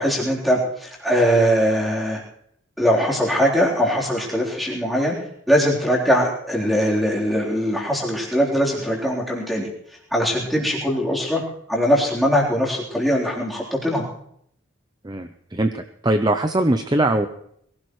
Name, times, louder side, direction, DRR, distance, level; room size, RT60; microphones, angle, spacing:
voice 1, 0.0-2.2 2.8-5.2 5.5-9.7 10.1-11.4 11.7-14.1, equal, ahead, -5 dB, 3.7 m, -21 dB
voice 2, 15.0-17.3, right 1 dB, 20° right, 7 dB, 0.6 m, -21 dB
22.5 x 17.0 x 3.2 m, 0.71 s
head